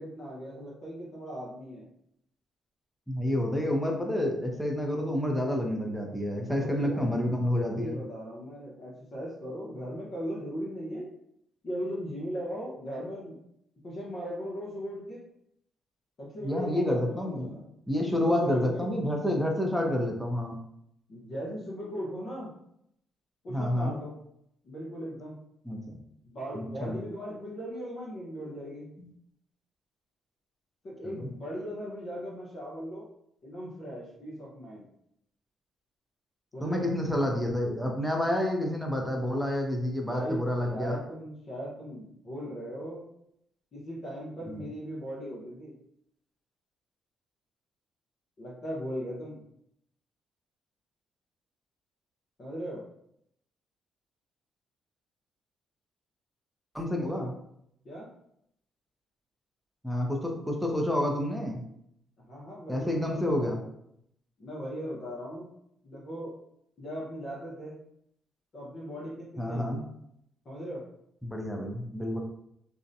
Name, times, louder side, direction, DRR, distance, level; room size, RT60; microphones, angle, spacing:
voice 1, 0.0-1.8 6.3-7.2 7.5-11.1 11.6-13.3 13.8-15.2 16.2-17.7 18.1-18.9 21.1-22.5 23.4-24.1 24.6-25.4 26.2-28.9 30.8-33.1 33.4-34.9 36.5-36.8 40.1-40.4 40.7-43.0 43.7-45.7 48.4-49.4 52.4-52.8 57.0-57.3 57.8-58.1 62.2-63.6 64.4-65.5 65.8-66.3 66.8-67.8 68.5-69.8 70.4-70.8, equal, 50° left, -6 dB, 0.7 m, -38 dB
voice 2, 3.1-8.0 16.4-17.6 17.9-20.6 23.5-23.9 25.7-26.0 26.5-27.0 29.0-29.1 31.0-31.3 36.6-41.0 44.4-44.6 56.7-57.3 59.8-61.6 62.7-63.6 69.4-69.8 71.2-72.2, left 1 dB, ahead, 1 dB, 0.6 m, -29 dB
2.6 x 2.1 x 2.6 m, 0.74 s
cardioid pair, 90°, 0 cm